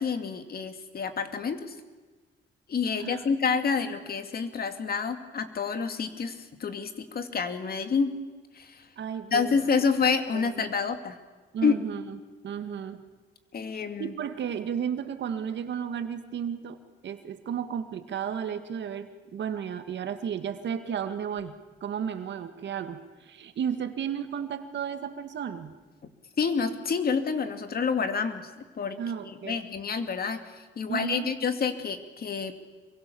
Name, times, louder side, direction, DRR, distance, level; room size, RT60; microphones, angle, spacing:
voice 1, 0.0-1.7 2.7-8.1 8.6-8.8 9.3-11.2 11.6-11.8 13.5-14.1 26.4-28.5 28.8-30.4 30.8-32.6, left 5 dB, 50° left, 8 dB, 2.5 m, -28 dB
voice 2, 9.0-9.6 10.3-10.6 11.5-12.2 12.4-13.0 13.7-21.6 21.8-25.7 29.0-29.6 30.9-31.3, right 8 dB, 65° right, 9 dB, 2.0 m, -33 dB
26.5 x 23.0 x 7.2 m, 1.3 s
cardioid pair, 90°, 20 cm